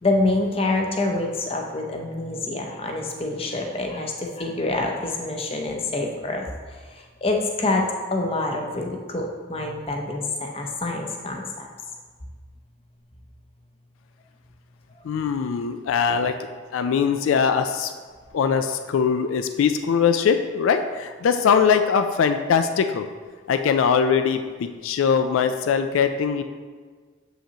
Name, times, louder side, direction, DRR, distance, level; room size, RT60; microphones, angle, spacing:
voice 1, 0.0-6.5 7.2-7.8 8.1-11.7, left 2 dB, 30° left, 2 dB, 0.6 m, -26 dB
voice 2, 15.0-17.9 18.3-23.0 23.5-26.4, left 6 dB, 85° left, 8 dB, 0.3 m, -21 dB
7.3 x 5.6 x 2.8 m, 1.5 s
head